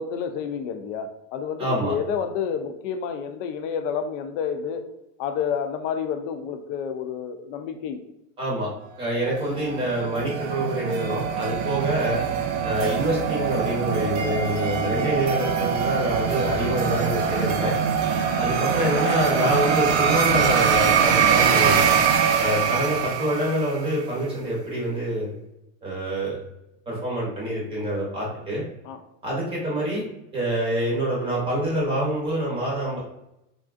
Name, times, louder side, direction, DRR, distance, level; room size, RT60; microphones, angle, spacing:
voice 1, 0.0-4.9 5.2-8.0 28.8-29.0, left 7 dB, 75° left, 7 dB, 0.5 m, -29 dB
voice 2, 1.6-2.0 8.4-8.7 9.0-12.2 12.6-17.8 18.3-22.0 22.4-25.3 25.8-26.4 26.9-28.6 29.2-30.0 30.3-33.0, right 1 dB, 15° right, -4 dB, 0.7 m, -26 dB
sound 1, 9.3-23.9, right 6 dB, 85° right, 0.6 m, -23 dB
3.5 x 2.5 x 2.4 m, 0.88 s
cardioid pair, 180°, 38 cm